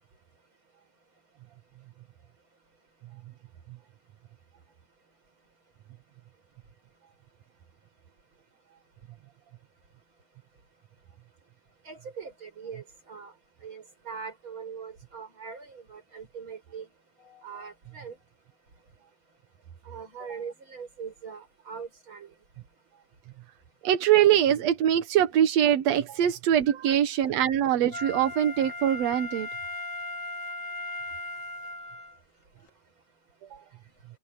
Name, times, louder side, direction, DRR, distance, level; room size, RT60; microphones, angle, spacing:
voice 1, 11.8-13.3 13.6-16.9 17.2-18.2 19.8-22.3 26.7-27.0, right 6 dB, 30° right, 6.6 m, -41 dB
voice 2, 23.8-29.5 33.5-33.6, right 10 dB, 65° right, 1.7 m, -23 dB
Wind instrument woodwind instrument, 27.9-32.2 32.7-32.8, left 2 dB, 60° left, 0.8 m, -37 dB
omnidirectional pair, 4.3 m